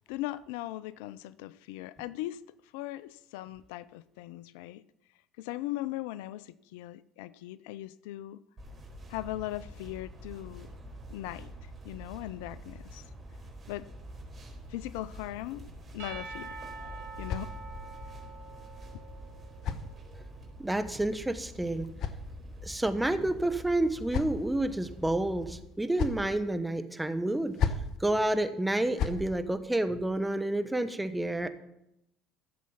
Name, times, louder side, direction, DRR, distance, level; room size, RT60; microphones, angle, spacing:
voice 1, 0.1-2.4 2.7-4.8 5.4-8.4 9.1-10.7 11.1-13.1 13.7-13.8 14.7-15.7 15.9-16.6 17.2-17.5, left 15 dB, 75° left, 18 dB, 0.3 m, -39 dB
sound 1, 8.6-25.6, equal, 35° right, 3.9 m, -46 dB
Percussion / Church bell, 16.0-20.2, right 4 dB, 70° right, 1.8 m, -46 dB
sound 2, 16.4-18.0 19.0-20.5 21.5-22.8 23.6-24.7 25.6-26.3 27.3-28.0 28.7-29.3, left 6 dB, 55° left, 1.0 m, -36 dB
voice 2, 20.6-21.9 22.6-27.6 28.0-31.5, right 1 dB, 10° right, 9 dB, 1.2 m, -29 dB
14.0 x 7.4 x 5.8 m, 0.82 s
hypercardioid pair, 65°, 0 cm